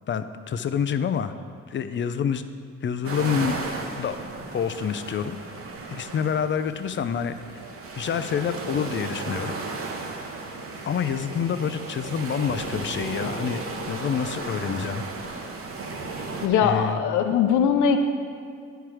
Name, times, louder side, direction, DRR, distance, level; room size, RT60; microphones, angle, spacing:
voice 1, 0.1-1.3 1.7-2.4 2.8-3.6 4.0-4.2 4.5-5.4 5.9-7.4 8.0-9.5 10.9-15.0 16.6-17.0, left 7 dB, 40° left, 11 dB, 0.5 m, -27 dB
sound 1, 3.0-16.5, right 3 dB, 45° right, 1.0 m, -35 dB
voice 2, 16.4-18.0, left 7 dB, 80° left, 6 dB, 0.7 m, -21 dB
9.9 x 4.6 x 4.8 m, 2.4 s
cardioid pair, 90°, 30 cm